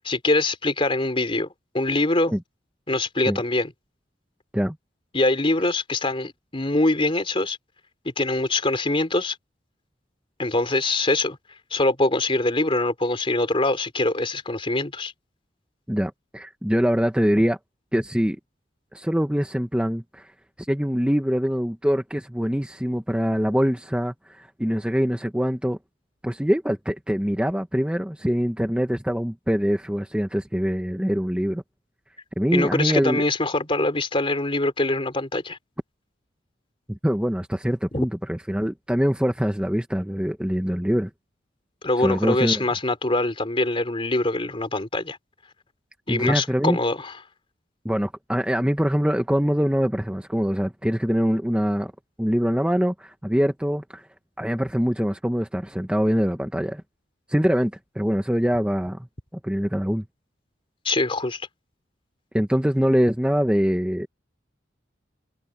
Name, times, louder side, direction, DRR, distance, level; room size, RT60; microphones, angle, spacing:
voice 1, 0.0-1.5 1.7-2.3 2.9-3.7 5.1-7.6 8.2-9.4 10.4-11.4 11.7-15.1 32.5-35.6 37.9-38.1 41.8-45.2 46.1-47.1 60.8-61.4, left 2 dB, 30° left, 3.2 m, -23 dB
voice 2, 15.9-17.6 17.9-18.4 18.9-20.3 20.6-25.8 26.2-31.6 32.4-33.2 36.9-41.1 42.0-42.6 46.1-46.8 47.8-51.9 52.2-54.1 54.4-56.8 57.3-59.1 59.4-60.1 62.3-64.1, equal, 5° right, 1.0 m, -24 dB
head